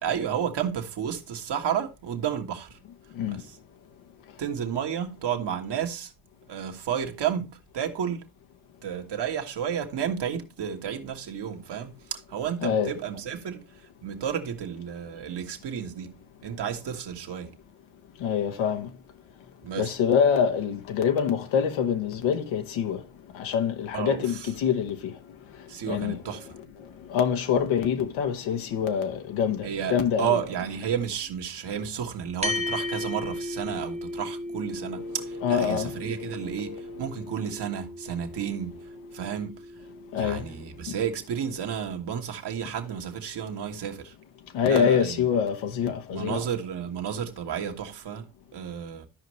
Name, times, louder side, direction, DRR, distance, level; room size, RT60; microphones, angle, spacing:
voice 1, 0.0-2.8 3.3-3.6 4.4-6.1 6.5-8.3 8.8-16.1 16.4-17.6 19.6-19.9 23.9-24.5 25.7-26.5 29.6-38.8 39.1-39.6 40.1-44.1 44.7-45.2 46.1-49.1, right 8 dB, 60° right, 1.6 m, -32 dB
voice 2, 12.6-12.9 18.2-18.9 19.8-23.0 23.3-25.2 25.6-26.2 26.8-30.4 34.8-35.1 35.4-37.0 40.1-40.5 40.9-41.0 44.5-46.4, left 7 dB, 85° left, 1.2 m, -26 dB
sound 1, 32.4-41.1, left 1 dB, 15° right, 0.8 m, -36 dB
13.5 x 5.2 x 3.2 m
supercardioid pair, 65°, 45 cm